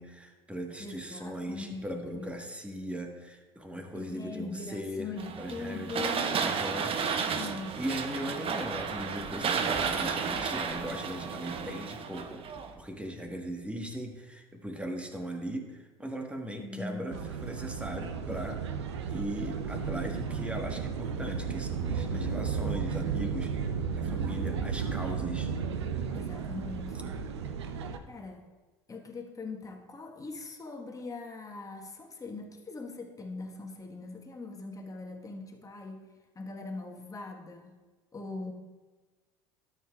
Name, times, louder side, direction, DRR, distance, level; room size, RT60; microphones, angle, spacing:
voice 1, 0.0-5.1 5.4-6.0 6.4-7.3 7.8-12.4 12.7-18.6 19.1-23.5 24.0-25.5, equal, 10° right, 3 dB, 1.5 m, -38 dB
voice 2, 0.8-2.3 3.9-6.4 7.3-7.8 16.6-17.2 22.1-22.3 26.1-27.2 28.1-28.4 28.9-36.0 36.3-37.8 38.1-38.5, left 3 dB, 25° left, 1 dB, 1.4 m, -41 dB
sound 1, 5.2-12.8, right 6 dB, 40° right, 0.8 m, -32 dB
sound 2, 17.1-28.0, right 6 dB, 85° right, 0.6 m, -33 dB
12.5 x 7.3 x 2.4 m, 1.2 s
hypercardioid pair, 70°, 14 cm